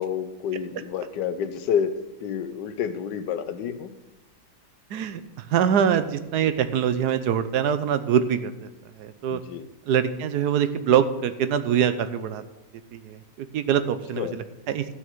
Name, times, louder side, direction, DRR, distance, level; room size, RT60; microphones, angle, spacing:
voice 1, 0.0-1.9 2.2-3.9 9.3-9.7 14.2-14.3, left 8 dB, 85° left, 11 dB, 1.4 m, -29 dB
voice 2, 4.9-8.7 9.0-9.4 9.9-12.4 12.9-15.0, right 8 dB, 75° right, 11 dB, 1.3 m, -24 dB
13.0 x 6.4 x 6.1 m, 1.0 s
omnidirectional pair, 1.8 m